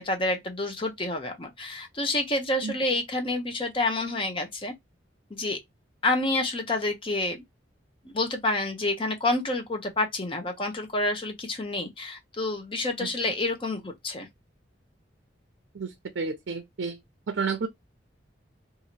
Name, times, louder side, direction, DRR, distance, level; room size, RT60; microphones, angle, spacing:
voice 1, 0.0-4.7 5.3-5.6 6.0-7.4 8.0-14.3, left 2 dB, 30° left, 0.7 m, -28 dB
voice 2, 15.7-17.0 17.3-17.7, right 5 dB, 85° right, 0.5 m, -31 dB
2.8 x 2.5 x 2.9 m
head